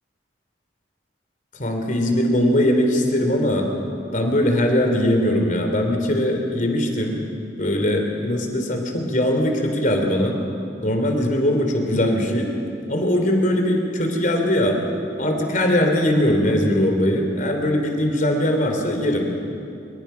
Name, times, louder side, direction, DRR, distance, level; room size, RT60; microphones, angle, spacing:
voice 1, 1.6-3.7 4.1-7.2 7.6-10.4 10.8-12.5 12.8-14.8 15.2-19.3, left 1 dB, 45° left, 3 dB, 3.4 m, -20 dB
26.5 x 24.5 x 5.8 m, 2.6 s
head